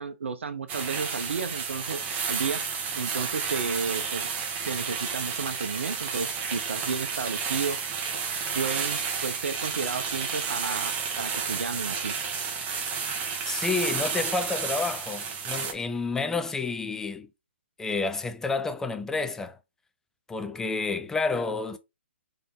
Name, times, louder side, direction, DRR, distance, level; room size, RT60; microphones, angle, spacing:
voice 1, 0.0-2.0 2.3-2.6 3.0-4.3 4.6-7.8 8.5-12.1, right 5 dB, 75° right, 0.8 m, -32 dB
sound 1, 0.7-15.7, right 6 dB, 25° right, 1.0 m, -31 dB
voice 2, 13.4-17.3 17.8-19.6 20.3-21.8, left 4 dB, 5° left, 0.5 m, -29 dB
3.8 x 3.4 x 3.5 m
hypercardioid pair, 135°, 7 cm